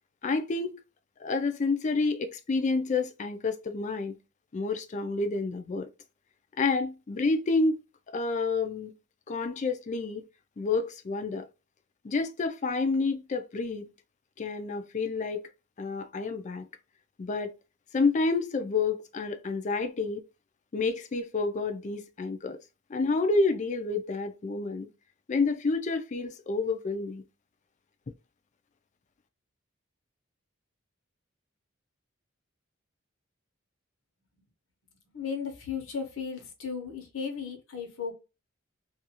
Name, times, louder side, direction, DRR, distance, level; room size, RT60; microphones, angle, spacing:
voice 1, 0.2-0.8 1.2-4.2 4.5-5.9 6.6-7.8 8.1-8.9 9.3-10.2 10.6-11.5 12.0-13.9 14.4-15.4 15.8-16.7 17.2-17.5 17.9-20.2 20.7-22.6 22.9-24.9 25.3-27.2, left 3 dB, 35° left, 0.4 m, -29 dB
voice 2, 35.1-38.1, left 6 dB, 85° left, 0.9 m, -35 dB
2.5 x 2.3 x 2.8 m
head